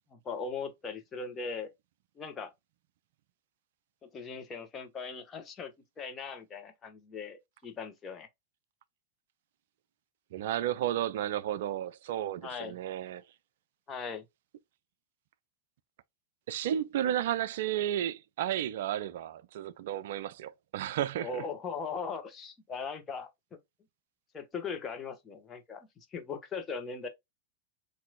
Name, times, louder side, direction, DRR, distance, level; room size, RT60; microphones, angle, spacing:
voice 1, 0.1-1.7 2.2-2.5 4.0-8.3 12.4-12.9 13.9-14.2 21.2-23.3 24.3-27.1, left 5 dB, 20° left, 1.1 m, -39 dB
voice 2, 10.3-13.2 16.5-21.3, right 11 dB, 55° right, 0.4 m, -32 dB
7.2 x 2.7 x 2.3 m
figure-of-eight pair, 90°, 0 cm